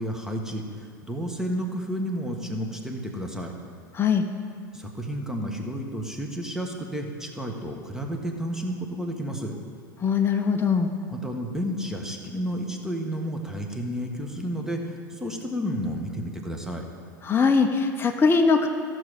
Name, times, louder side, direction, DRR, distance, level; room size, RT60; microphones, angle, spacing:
voice 1, 0.0-3.5 4.7-9.5 11.1-16.9, equal, 5° right, 2 dB, 1.4 m, -31 dB
voice 2, 3.9-4.3 10.0-10.9 17.2-18.7, left 5 dB, 20° left, 4 dB, 0.7 m, -21 dB
14.0 x 6.1 x 5.1 m, 2.2 s
hypercardioid pair, 85°, 11 cm